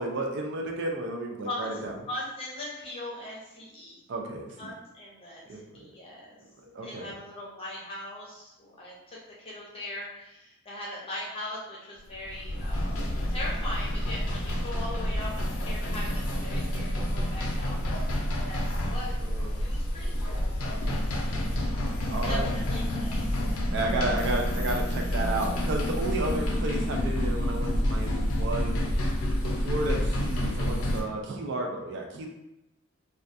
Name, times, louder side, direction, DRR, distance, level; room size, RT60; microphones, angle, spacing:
voice 1, 0.0-1.9 4.1-4.7 5.5-5.6 6.7-7.1 19.2-19.6 21.8-22.5 23.7-28.8 29.4-32.3, right 2 dB, 55° right, 1 dB, 0.3 m, -32 dB
voice 2, 2.1-4.0 4.6-6.4 6.8-12.9 13.3-18.2 18.4-19.2 19.6-20.8 21.3-21.9 22.3-23.7, left 1 dB, 25° left, -5 dB, 0.6 m, -40 dB
sound 1, 12.1-31.0, equal, 85° left, 0.5 m, -29 dB
2.2 x 2.2 x 2.5 m, 0.92 s
head